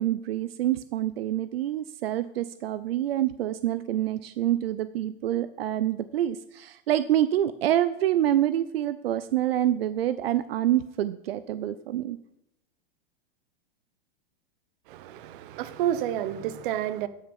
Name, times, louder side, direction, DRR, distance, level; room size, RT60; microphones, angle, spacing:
voice 1, 0.0-12.2, right 12 dB, 85° right, 0.5 m, -26 dB
voice 2, 14.9-17.1, right 11 dB, 60° right, 0.9 m, -30 dB
12.0 x 6.5 x 5.3 m
hypercardioid pair, 120°, 29 cm